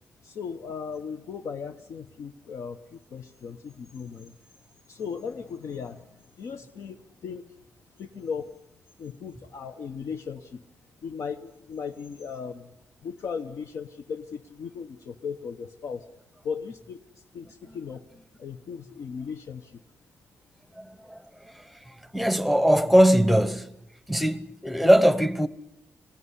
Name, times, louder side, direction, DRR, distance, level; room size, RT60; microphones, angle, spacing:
voice 1, 0.2-4.3 4.9-7.4 8.0-8.5 9.0-10.6 11.0-12.7 13.0-16.1 16.4-17.0 17.3-18.0 18.4-19.8, left 6 dB, 70° left, 0.9 m, -37 dB
voice 2, 20.8-21.2 21.4-23.7 24.1-25.5, equal, ahead, 0.9 m, -21 dB
25.5 x 17.5 x 9.8 m
wide cardioid pair, 155°, 5 cm